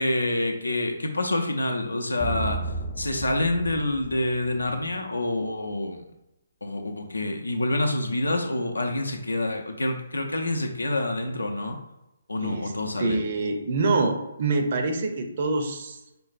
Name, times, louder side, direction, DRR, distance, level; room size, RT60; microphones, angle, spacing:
voice 1, 0.0-2.6 3.0-6.0 6.6-11.8 12.3-13.2, left 1 dB, 80° left, 3 dB, 0.5 m, -27 dB
sound 1, 2.2-4.9, right 1 dB, 30° left, 0.3 m, -33 dB
voice 2, 12.4-12.7 13.0-16.0, right 3 dB, 45° right, 5 dB, 0.5 m, -25 dB
5.2 x 2.1 x 2.5 m, 0.92 s
figure-of-eight pair, 135°, 0 cm